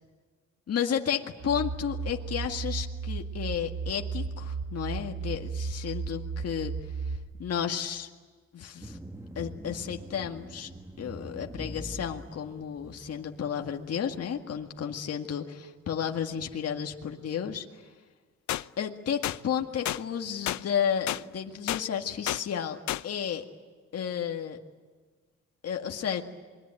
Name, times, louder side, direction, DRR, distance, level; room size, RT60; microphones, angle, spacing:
voice 1, 0.7-8.1 8.5-9.0 9.4-10.7 11.0-17.9 18.8-22.8 23.0-23.5 23.9-24.6 25.6-26.2, left 8 dB, 55° left, 3 dB, 2.0 m, -32 dB
sound 1, 1.4-7.2, right 5 dB, 60° right, 4.1 m, -34 dB
sound 2, 8.8-13.4, equal, 10° right, 1.7 m, -43 dB
sound 3, 18.5-18.6 19.2-19.4 19.9-20.0 20.5-20.6 21.1-21.2 21.7-21.8 22.3-22.4 22.9-23.0, left 14 dB, 70° left, 0.7 m, -30 dB
28.0 x 22.0 x 9.1 m, 1.5 s
cardioid pair, 90°, 30 cm